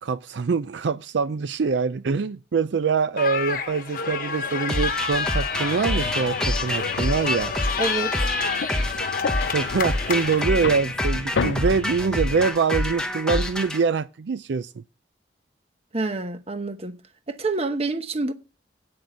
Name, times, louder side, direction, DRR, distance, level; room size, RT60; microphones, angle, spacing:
voice 1, 0.0-7.5 9.5-14.8, right 5 dB, 70° right, 0.4 m, -24 dB
sound 1, 3.2-10.5, left 5 dB, 50° left, 1.1 m, -29 dB
sound 2, 4.7-13.8, left 1 dB, 5° left, 1.0 m, -27 dB
sound 3, 5.5-12.5, left 5 dB, 75° left, 0.4 m, -34 dB
voice 2, 7.8-8.1 15.9-16.9 17.3-18.3, right 3 dB, 35° right, 0.9 m, -27 dB
8.8 x 6.2 x 7.9 m
head